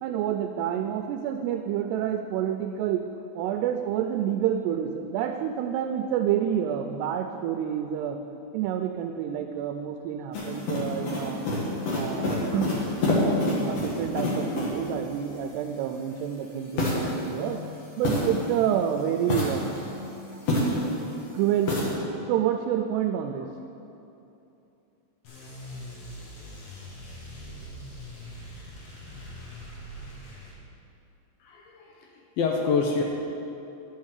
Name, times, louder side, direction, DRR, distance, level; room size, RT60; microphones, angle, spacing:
voice 1, 0.0-3.0 3.4-8.2 8.5-11.5 11.9-12.8 13.6-17.6 18.0-19.7 21.3-22.0 22.3-23.5, right 9 dB, 85° right, 5 dB, 2.5 m, -28 dB
sound 1, 10.3-14.9 16.8-18.7 19.2-21.0 21.7-21.9, left 1 dB, 55° left, 1.9 m, -28 dB
sound 2, 25.2-30.6, equal, 70° left, 4.2 m, -42 dB
voice 2, 31.4-33.0, left 5 dB, 85° left, 1 dB, 2.1 m, -27 dB
11.0 x 7.2 x 6.5 m, 2.9 s
omnidirectional pair, 5.1 m